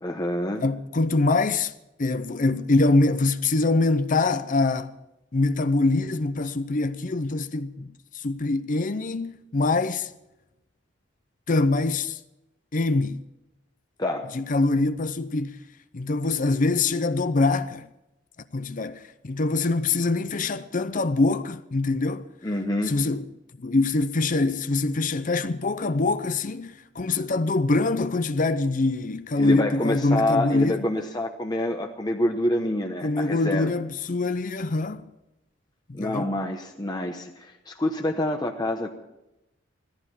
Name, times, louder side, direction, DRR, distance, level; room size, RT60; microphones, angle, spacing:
voice 1, 0.0-0.6 14.0-14.3 22.4-22.9 29.4-33.7 35.9-38.9, left 1 dB, 20° left, 1.0 m, -27 dB
voice 2, 0.6-1.7 2.0-4.9 5.3-10.1 11.5-12.2 12.7-13.2 14.3-15.6 15.9-17.9 18.5-22.3 22.9-23.3 23.6-30.9 33.0-35.1 35.9-36.3, left 3 dB, 45° left, 0.7 m, -24 dB
16.0 x 14.0 x 5.9 m
head